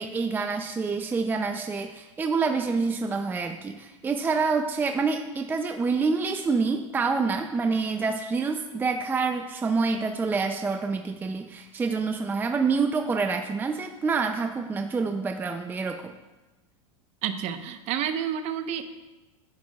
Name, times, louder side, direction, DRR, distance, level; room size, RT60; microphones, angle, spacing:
voice 1, 0.0-16.1, right 4 dB, 10° right, 6 dB, 0.5 m, -27 dB
voice 2, 17.2-18.8, right 9 dB, 40° right, 9 dB, 0.9 m, -29 dB
17.0 x 10.5 x 2.4 m, 1.1 s
supercardioid pair, 130°, 17 cm